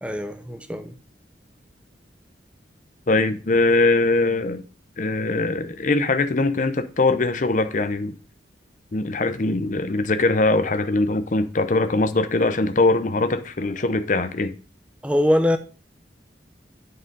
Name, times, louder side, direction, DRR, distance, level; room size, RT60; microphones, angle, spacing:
voice 1, 0.0-0.9 15.0-15.6, left 1 dB, 5° right, 0.7 m, -22 dB
voice 2, 3.1-4.6 5.0-8.2 8.9-14.5, left 2 dB, 45° left, 0.7 m, -21 dB
9.8 x 4.0 x 5.3 m
head